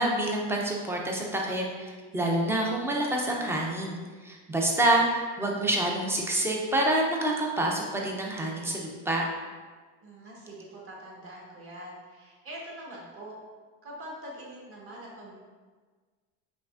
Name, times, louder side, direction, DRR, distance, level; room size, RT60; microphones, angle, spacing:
voice 1, 0.0-9.3, right 1 dB, 5° right, -1 dB, 0.4 m, -27 dB
voice 2, 10.0-13.3 13.8-15.3, right 1 dB, 40° right, -5 dB, 1.3 m, -44 dB
5.8 x 3.1 x 2.4 m, 1.4 s
cardioid pair, 140°, 36 cm